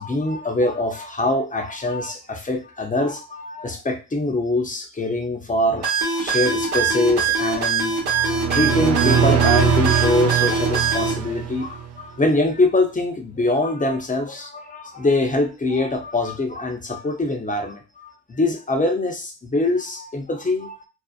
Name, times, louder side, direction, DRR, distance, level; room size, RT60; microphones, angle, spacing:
voice 1, 0.0-20.8, left 2 dB, 20° left, 4 dB, 0.6 m, -23 dB
sound 1, 5.8-11.1, right 5 dB, 80° right, 1.0 m, -22 dB
sound 2, 8.1-11.9, right 8 dB, 45° right, 0.4 m, -22 dB
2.6 x 2.0 x 2.4 m, 0.30 s
supercardioid pair, 50°, 38 cm